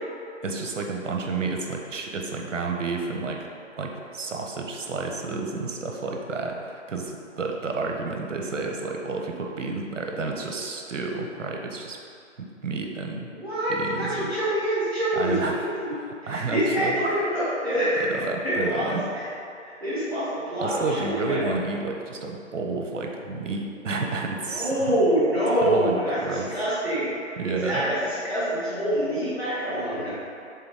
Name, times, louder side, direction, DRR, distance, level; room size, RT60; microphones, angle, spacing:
voice 1, 0.4-3.5 3.8-12.0 12.4-13.3 13.7-14.3 15.2-15.7 16.0-17.0 18.0-19.1 20.6-24.9 25.6-26.5 27.4-27.8, right 3 dB, 75° right, 2 dB, 1.0 m, -30 dB
voice 2, 13.3-15.8 16.2-18.1 18.4-19.2 19.6-21.4 24.5-30.1, right 1 dB, ahead, -33 dB, 0.4 m, -26 dB
6.9 x 3.7 x 3.6 m, 2.5 s
figure-of-eight pair, 145°, 38 cm